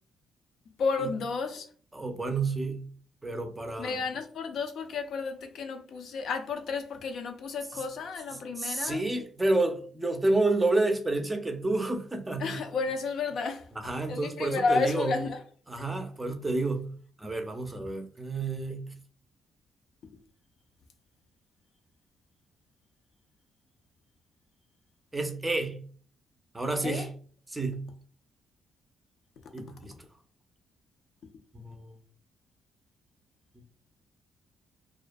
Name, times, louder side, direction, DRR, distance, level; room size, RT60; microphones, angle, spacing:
voice 1, 0.8-1.7 3.8-9.0 12.4-13.7 14.1-15.4 26.8-27.1, left 4 dB, 70° left, 0.5 m, -31 dB
voice 2, 1.9-2.8 3.2-4.0 7.7-7.8 8.3-12.6 13.8-15.2 15.7-16.9 17.2-18.9 25.1-25.8 26.5-27.1 27.5-27.9 29.5-29.9 31.5-32.0 33.6-33.7, right 2 dB, 15° right, 0.5 m, -30 dB
2.3 x 2.1 x 2.4 m
cardioid pair, 90°, 0 cm